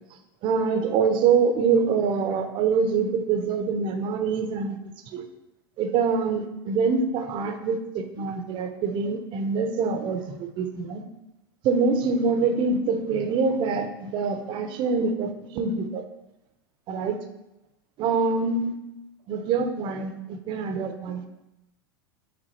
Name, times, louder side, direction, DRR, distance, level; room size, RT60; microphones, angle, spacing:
voice 1, 0.4-4.8 5.1-5.2 5.8-11.0 11.6-16.0 16.9-17.2 18.0-18.7 19.3-21.2, right 5 dB, 40° right, 7 dB, 0.9 m, -25 dB
7.7 x 4.5 x 4.3 m, 0.93 s
figure-of-eight pair, 85°, 13 cm